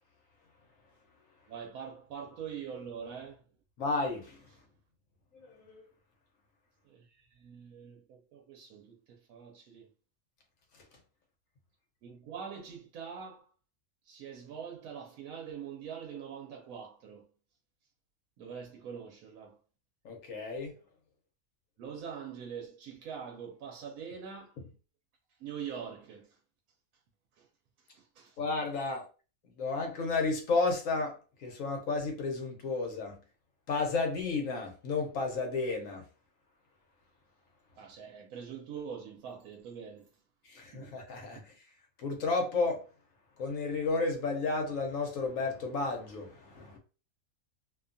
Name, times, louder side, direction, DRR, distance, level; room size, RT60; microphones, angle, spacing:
voice 1, 1.5-3.4 6.8-9.9 12.0-13.5 14.0-17.3 18.4-19.6 21.8-24.6 25.4-26.4 27.4-27.5 27.9-28.4 37.8-40.1 40.7-41.0, right 7 dB, 90° right, 1.0 m, -44 dB
voice 2, 3.8-4.4 5.3-5.8 20.0-20.7 28.4-29.1 29.6-33.2 33.7-36.0 40.4-41.4 42.0-42.8 43.4-46.8, left 3 dB, 70° left, 1.1 m, -32 dB
2.7 x 2.2 x 2.5 m
omnidirectional pair, 1.5 m